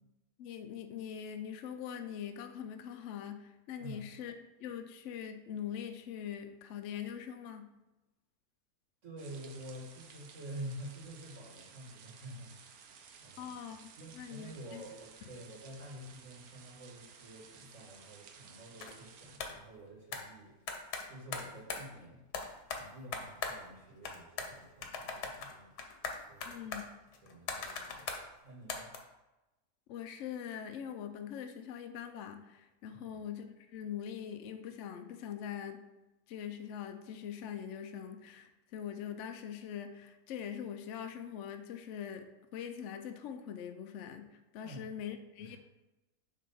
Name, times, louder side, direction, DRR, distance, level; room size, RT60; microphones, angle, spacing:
voice 1, 0.4-4.3 4.6-7.7 13.4-14.8 26.4-26.8 29.9-35.8 36.3-45.6, left 8 dB, 65° left, 6 dB, 0.7 m, -43 dB
voice 2, 9.0-12.8 13.2-13.6 14.0-20.5 21.1-22.2 22.7-25.7 26.2-26.6 27.2-28.1 28.4-28.9 32.9-33.2 44.6-45.1 45.4-45.6, right 1 dB, 50° right, -1 dB, 1.8 m, -48 dB
sound 1, 9.2-19.4, right 6 dB, 70° right, 1.1 m, -56 dB
sound 2, 18.8-19.0 19.4-19.6 20.1-20.3 20.7-21.9 22.3-23.8 24.0-24.6 24.8-28.3 28.7-29.0, left 5 dB, 90° left, 1.4 m, -40 dB
7.5 x 3.3 x 5.4 m, 1.0 s
omnidirectional pair, 1.6 m